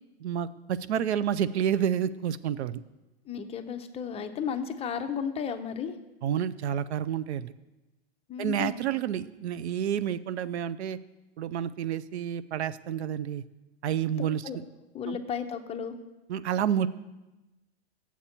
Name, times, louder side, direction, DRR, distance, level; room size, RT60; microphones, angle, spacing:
voice 1, 0.2-2.8 6.2-7.5 8.4-11.0 11.4-13.4 13.8-14.4 15.1-15.2 16.3-16.9, right 9 dB, 85° right, 16 dB, 0.5 m, -29 dB
voice 2, 3.3-6.0 8.3-8.8 14.4-14.6 14.9-16.0, left 7 dB, 20° left, 8 dB, 0.5 m, -33 dB
8.6 x 7.2 x 4.3 m, 1.1 s
hypercardioid pair, 115°, 33 cm